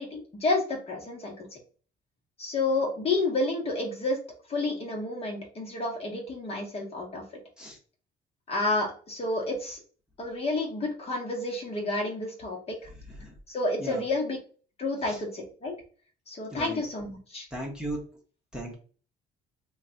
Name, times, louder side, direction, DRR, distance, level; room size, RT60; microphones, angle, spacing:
voice 1, 0.0-1.5 2.4-4.2 4.5-7.2 8.5-9.8 10.2-12.8 13.5-14.4 14.8-15.7 16.3-17.5, left 2 dB, 35° left, -1 dB, 1.2 m, -30 dB
voice 2, 16.5-16.8 17.5-18.0 18.5-18.7, right 1 dB, 5° right, -3 dB, 1.1 m, -36 dB
3.1 x 2.4 x 3.9 m, 0.40 s
cardioid pair, 110°, 17 cm